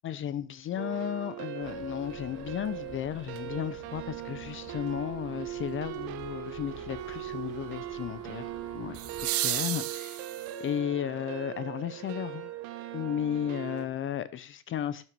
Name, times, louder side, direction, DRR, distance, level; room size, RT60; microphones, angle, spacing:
voice 1, 0.0-10.3 10.6-12.5 12.9-15.0, left 10 dB, 30° left, 0.6 m, -34 dB
sound 1, 0.8-13.9, right 11 dB, 70° right, 1.4 m, -40 dB
sound 2, 1.6-9.3, left 5 dB, 50° left, 2.2 m, -51 dB
sound 3, 3.3-3.4 8.9-10.7 12.9-13.0, right 15 dB, 40° right, 0.5 m, -33 dB
12.0 x 6.1 x 6.0 m
cardioid pair, 155°, 39 cm